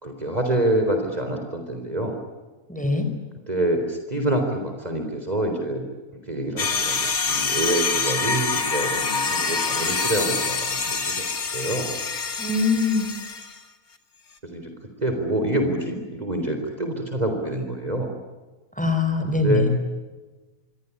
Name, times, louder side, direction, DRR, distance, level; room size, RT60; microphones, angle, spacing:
voice 1, 0.0-2.2 3.5-5.8 6.3-11.9 14.4-14.7 15.0-18.2 19.4-19.7, right 1 dB, 25° right, 4 dB, 4.0 m, -26 dB
voice 2, 2.7-3.1 12.4-13.1 18.8-19.7, left 3 dB, 5° left, 6 dB, 4.9 m, -22 dB
sound 1, 6.6-13.6, left 4 dB, 80° left, 2.6 m, -26 dB
26.5 x 24.0 x 8.5 m, 1.2 s
omnidirectional pair, 1.5 m